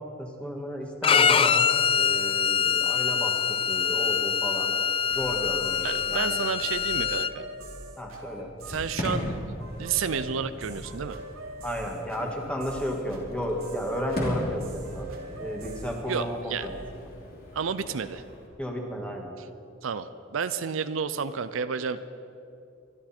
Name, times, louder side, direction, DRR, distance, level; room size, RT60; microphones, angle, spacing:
voice 1, 0.2-4.7 5.1-6.4 8.0-8.5 11.6-15.1 15.4-17.1 18.6-19.3, equal, 5° left, 1 dB, 1.8 m, -33 dB
Bowed string instrument, 1.0-7.3, left 7 dB, 25° left, 0.3 m, -24 dB
sound 1, 5.1-17.0, right 1 dB, 90° right, 2.5 m, -42 dB
voice 2, 5.8-7.4 8.7-9.3 9.8-11.2 16.1-16.7 17.5-18.2 19.4-19.5 19.8-22.2, right 6 dB, 70° right, 12 dB, 0.5 m, -31 dB
Fireworks, 8.6-18.5, equal, 50° left, 2.9 m, -38 dB
24.5 x 12.0 x 4.4 m, 2.6 s
head